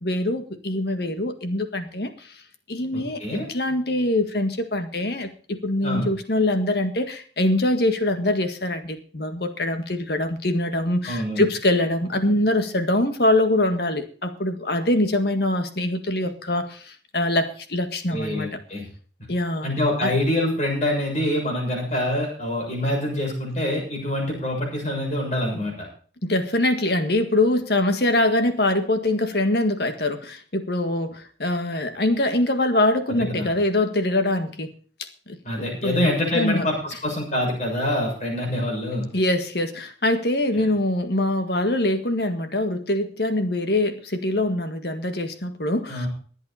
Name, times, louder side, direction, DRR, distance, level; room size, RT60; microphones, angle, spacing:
voice 1, 0.0-2.3 2.7-18.6 19.3-19.7 20.0-20.1 26.2-34.7 35.3-36.1 36.3-36.7 39.1-46.1, left 1 dB, 55° left, 8 dB, 1.8 m, -23 dB
voice 2, 2.9-3.4 5.8-6.1 11.0-11.4 18.1-18.8 19.6-25.9 33.1-33.5 35.4-39.1 40.6-40.7 45.9-46.1, left 1 dB, 35° left, -1 dB, 6.9 m, -25 dB
22.0 x 8.3 x 4.3 m, 0.42 s
head